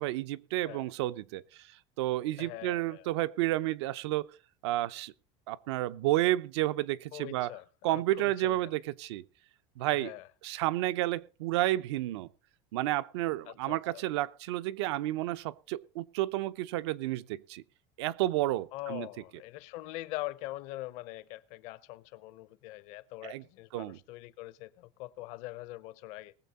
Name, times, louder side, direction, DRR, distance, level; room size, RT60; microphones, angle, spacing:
voice 1, 0.0-1.7 2.0-4.3 4.6-5.1 5.5-7.5 7.8-9.2 9.8-10.1 10.4-12.3 12.7-17.6 18.0-19.1 23.2-23.4 23.7-24.0, right 16 dB, 90° right, 0.7 m, -31 dB
voice 2, 2.4-3.1 7.1-8.7 9.9-10.3 13.5-14.0 18.7-26.3, left 17 dB, 60° left, 0.7 m, -43 dB
20.0 x 7.4 x 4.1 m
cardioid pair, 155°, 14 cm